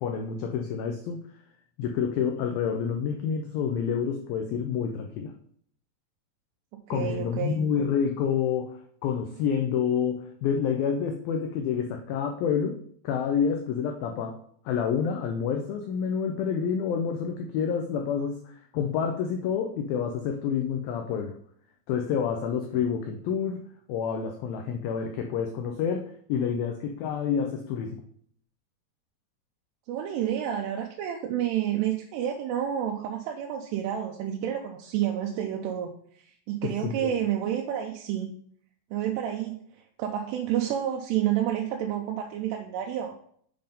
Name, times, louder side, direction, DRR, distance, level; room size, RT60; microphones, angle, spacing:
voice 1, 0.0-1.2 1.8-5.3 6.9-12.8 13.0-14.4 14.7-21.4 21.9-23.6 23.9-28.0 36.6-37.1, left 7 dB, 90° left, 3 dB, 2.0 m, -28 dB
voice 2, 6.9-7.6 29.9-38.3 38.9-39.6 40.0-43.1, right 10 dB, 80° right, 2 dB, 2.7 m, -29 dB
7.8 x 3.5 x 5.2 m, 0.62 s
omnidirectional pair, 5.0 m